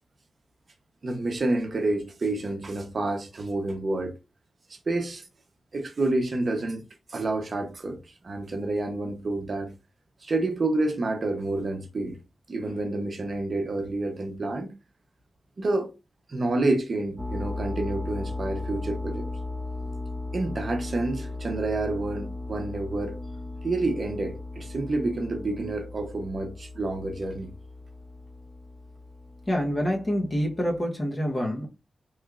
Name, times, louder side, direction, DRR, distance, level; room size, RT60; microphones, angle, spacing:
voice 1, 1.0-4.1 4.9-5.2 5.7-6.8 7.1-9.7 10.2-12.2 12.5-14.7 15.6-15.9 16.3-19.3 20.3-23.2 23.6-27.5, right 2 dB, 50° right, 0.8 m, -29 dB
sound 1, 17.2-30.8, left 2 dB, 5° right, 0.5 m, -37 dB
voice 2, 29.5-31.7, equal, 25° left, 0.9 m, -26 dB
3.5 x 3.1 x 2.4 m
wide cardioid pair, 120°, 0 cm